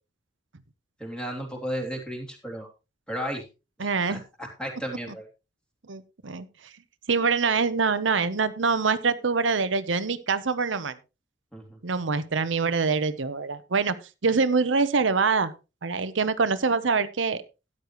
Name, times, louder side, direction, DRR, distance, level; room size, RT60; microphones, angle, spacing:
voice 1, 1.0-2.7 3.1-3.4 4.1-5.3 11.5-11.8, equal, 5° left, 2 dB, 3.0 m, -34 dB
voice 2, 3.8-4.2 5.9-6.5 7.1-11.0 11.8-13.9 14.2-15.5 15.8-17.4, right 4 dB, 85° right, 12 dB, 0.9 m, -24 dB
13.5 x 9.8 x 3.1 m, 0.28 s
head